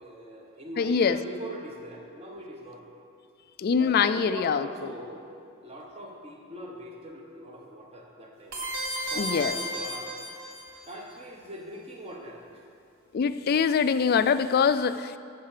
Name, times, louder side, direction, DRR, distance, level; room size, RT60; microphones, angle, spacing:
voice 1, 0.0-2.8 3.8-5.2 5.6-8.6 9.1-10.2 10.9-12.7, equal, 25° right, 0 dB, 1.1 m, -41 dB
voice 2, 0.8-1.2 3.6-4.7 9.2-9.6 13.1-15.2, left 6 dB, 45° left, 12 dB, 0.3 m, -24 dB
sound 1, 8.5-10.8, right 1 dB, 65° right, 1.9 m, -33 dB
8.7 x 6.6 x 6.7 m, 2.4 s
head